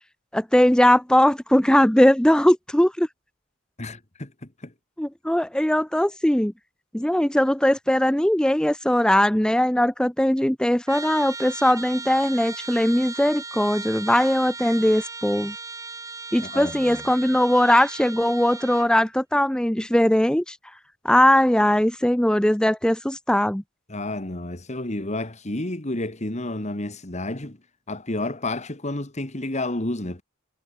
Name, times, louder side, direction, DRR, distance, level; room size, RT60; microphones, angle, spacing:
voice 1, 0.3-3.1 5.0-6.5 6.9-15.5 16.3-20.6 21.0-23.6, left 1 dB, 5° left, 0.5 m, -20 dB
voice 2, 3.8-4.3 4.6-4.7 16.4-17.0 23.9-27.6 27.9-30.2, left 2 dB, 35° left, 1.9 m, -30 dB
Trumpet, 10.9-18.9, right 4 dB, 15° right, 1.1 m, -37 dB
head